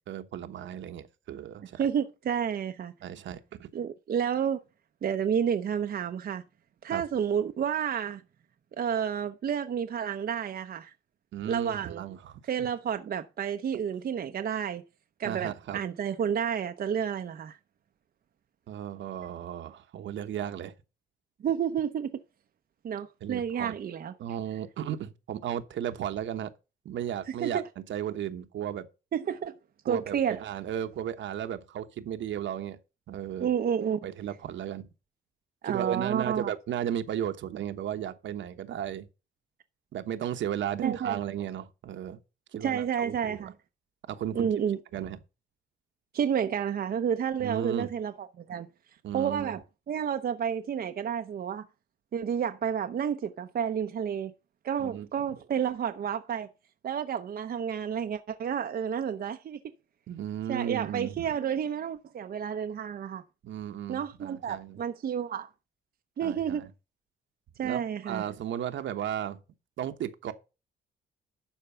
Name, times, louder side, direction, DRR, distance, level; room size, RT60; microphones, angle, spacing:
voice 1, 0.1-1.8 3.0-3.7 6.9-7.0 11.3-12.7 15.2-15.8 18.7-20.7 23.2-23.7 24.2-26.5 26.8-27.6 27.9-28.9 29.9-32.8 33.1-33.5 34.0-34.9 35.6-39.1 39.9-42.2 42.5-43.5 44.1-44.5 44.9-45.2 47.4-47.9 49.0-49.6 54.8-55.1 60.1-61.1 63.4-64.8 66.2-66.7 67.6-69.4 69.8-70.3, right 10 dB, 70° right, 1.1 m, -35 dB
voice 2, 1.8-2.9 3.7-4.6 5.0-6.4 6.8-8.2 8.8-10.9 11.5-12.0 12.5-14.8 15.2-17.6 21.4-22.2 22.8-24.1 27.3-27.7 29.1-29.5 29.8-30.4 33.4-34.0 35.6-36.5 40.8-41.2 42.6-43.5 44.3-44.8 46.1-48.7 49.1-51.6 52.1-54.3 54.6-56.5 56.8-59.6 60.5-63.2 63.9-65.5 66.2-66.7 67.6-68.2, right 8 dB, 50° right, 0.7 m, -30 dB
12.0 x 4.5 x 5.6 m
cardioid pair, 90°, 20 cm